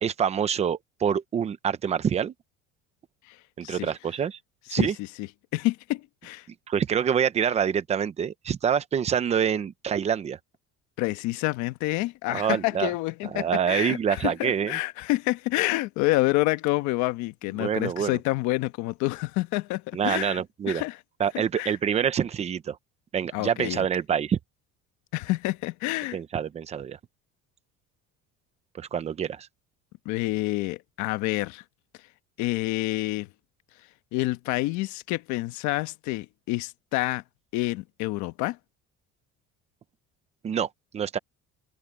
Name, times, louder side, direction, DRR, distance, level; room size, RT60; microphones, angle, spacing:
voice 1, 0.0-2.3 3.6-4.4 4.7-5.0 6.7-10.4 12.3-12.9 13.3-14.8 17.6-18.2 19.9-20.8 21.2-22.8 23.1-24.4 26.1-27.0 28.8-29.5 40.4-41.2, right 8 dB, 20° right, 0.7 m, -26 dB
voice 2, 5.5-6.5 11.0-20.4 20.7-21.0 21.5-21.7 23.3-23.9 25.1-26.2 30.0-31.6 32.4-33.3 34.1-37.2 37.5-38.6, left 19 dB, 70° left, 1.2 m, -28 dB
cardioid pair, 180°, 30 cm